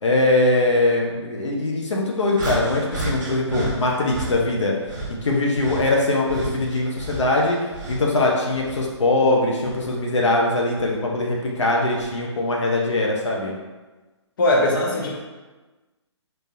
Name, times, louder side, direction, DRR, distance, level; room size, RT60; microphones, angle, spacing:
voice 1, 0.0-4.7 5.1-7.6 7.9-13.5, left 2 dB, 75° left, -2 dB, 0.7 m, -21 dB
sound 1, 2.4-4.4 4.9-8.2 8.5-10.0 10.8-10.9 11.9-12.1, right 1 dB, 40° right, 0.9 m, -32 dB
voice 2, 14.4-15.2, left 1 dB, 45° left, -2 dB, 0.9 m, -20 dB
3.9 x 2.6 x 2.6 m, 1.2 s
figure-of-eight pair, 140°, 15 cm